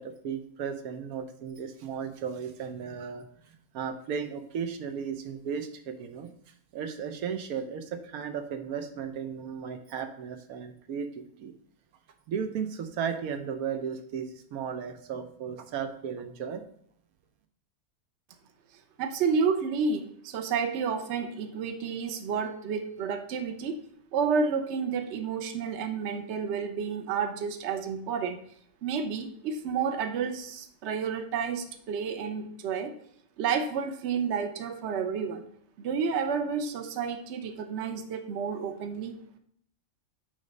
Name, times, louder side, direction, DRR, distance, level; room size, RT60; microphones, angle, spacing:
voice 1, 0.0-6.3 6.7-11.5 12.3-16.6, right 7 dB, 85° right, 7 dB, 1.2 m, -35 dB
voice 2, 19.0-23.8 24.1-28.4 28.8-32.9 33.4-35.4 35.8-39.2, right 6 dB, 60° right, 8 dB, 1.0 m, -30 dB
8.9 x 3.3 x 5.2 m, 0.65 s
omnidirectional pair, 1.5 m